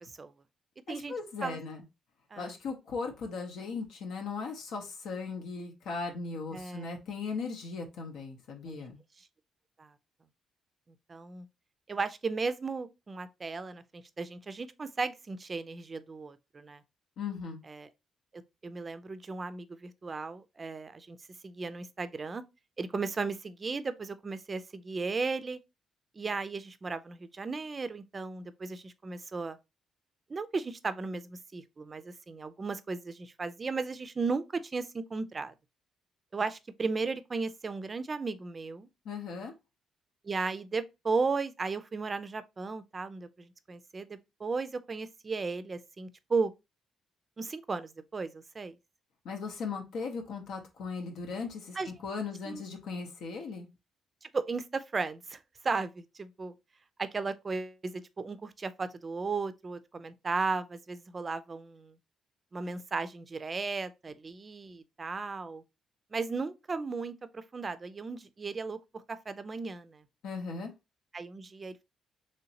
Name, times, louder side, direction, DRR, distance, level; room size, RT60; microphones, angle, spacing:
voice 1, 0.0-0.3 0.9-1.1 1.4-1.6 2.3-2.5 6.5-6.9 8.7-8.9 9.2-9.3 9.8-9.9 11.1-11.5 11.9-16.8 17.7-17.9 18.3-21.2 21.4-22.4 22.8-25.6 26.2-29.6 30.3-35.5 36.3-38.9 40.2-46.5 47.4-48.8 51.7-52.0 52.4-52.6 54.2-56.5 57.0-62.0 62.5-65.6 66.1-68.8 69.1-70.0 71.1-71.8, right 4 dB, 35° right, 0.4 m, -35 dB
voice 2, 0.9-1.8 2.4-9.0 17.2-17.6 39.0-39.5 49.2-53.7 70.2-70.7, left 4 dB, 80° left, 0.7 m, -38 dB
3.1 x 2.8 x 2.7 m
cardioid pair, 90°, 0 cm